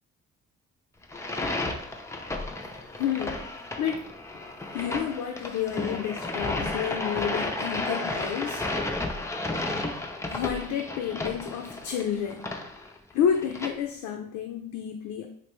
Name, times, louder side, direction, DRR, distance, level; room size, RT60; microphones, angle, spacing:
sound 1, 1.0-13.7, left 2 dB, 10° left, 0.3 m, -33 dB
voice 1, 2.9-3.4 3.8-4.1 4.7-8.8 10.3-12.5 13.1-15.3, left 8 dB, 80° left, 2 dB, 0.5 m, -30 dB
3.2 x 2.6 x 2.9 m, 0.64 s
cardioid pair, 90°, 30 cm